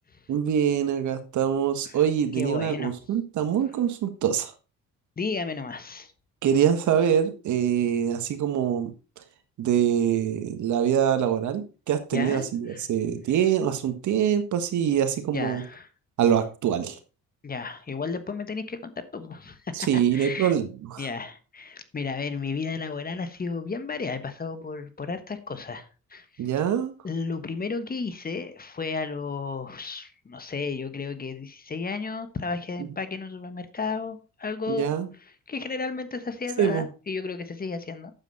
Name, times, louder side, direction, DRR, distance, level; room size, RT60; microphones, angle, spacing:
voice 1, 0.3-4.5 6.4-8.9 9.6-15.6 16.2-17.0 19.7-21.1 26.4-26.9 32.8-32.9 34.7-35.1 36.6-36.9, right 9 dB, 75° right, 8 dB, 1.6 m, -24 dB
voice 2, 2.4-3.0 5.2-6.1 12.1-12.9 15.3-15.9 17.4-20.5 21.0-26.4 27.0-34.9 35.5-38.1, left 4 dB, 30° left, 11 dB, 1.3 m, -33 dB
9.0 x 7.2 x 4.1 m, 0.33 s
cardioid pair, 90°, 30 cm